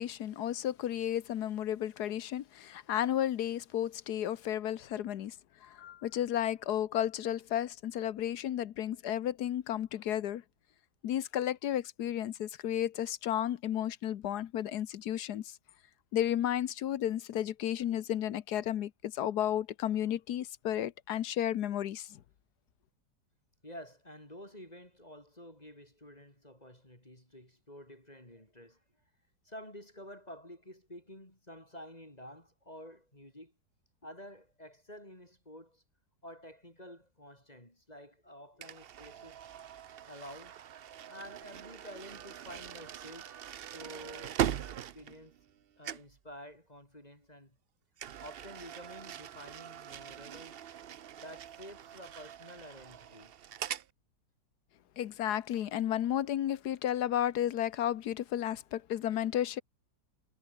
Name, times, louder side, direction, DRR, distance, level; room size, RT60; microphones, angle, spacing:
voice 1, 0.0-5.3 5.6-10.4 11.0-15.6 16.1-22.2 55.0-59.6, left 11 dB, 75° left, 1.4 m, -33 dB
voice 2, 23.6-28.8 29.4-33.5 34.0-35.8 36.2-39.4 40.1-40.6 41.1-45.3 45.8-47.6 48.2-50.6 51.2-53.3, equal, 20° left, 5.3 m, -50 dB
sound 1, 38.6-45.6 45.8-46.2 48.0-53.9, right 10 dB, 65° right, 0.5 m, -41 dB
omnidirectional pair, 1.8 m